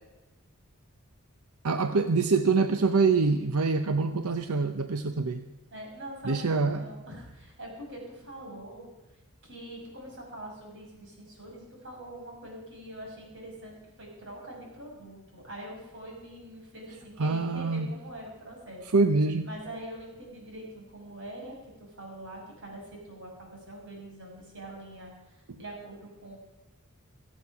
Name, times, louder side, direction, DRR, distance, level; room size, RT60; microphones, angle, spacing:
voice 1, 1.6-5.4 6.2-6.8 17.2-17.9 18.9-19.5, right 4 dB, 85° right, 8 dB, 0.8 m, -25 dB
voice 2, 5.7-18.8 19.4-26.4, right 1 dB, 55° right, -1 dB, 5.8 m, -44 dB
23.0 x 8.1 x 5.9 m, 1.1 s
head